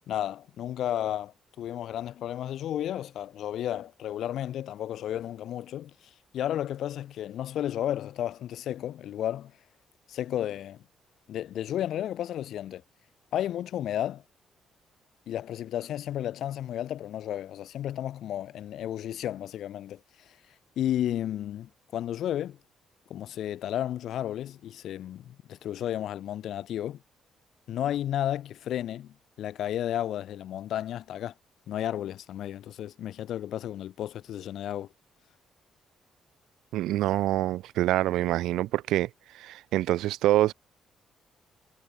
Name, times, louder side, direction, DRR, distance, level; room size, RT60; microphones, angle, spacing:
voice 1, 0.1-5.9 6.3-9.5 10.1-10.8 11.3-12.8 13.3-14.2 15.3-20.0 20.3-20.4 20.8-22.6 23.1-27.0 27.7-31.3 31.7-34.9, left 11 dB, 75° left, 3.1 m, -33 dB
voice 2, 36.7-39.1 39.3-40.5, right 15 dB, 90° right, 0.4 m, -25 dB
cardioid pair, 90°, 0 cm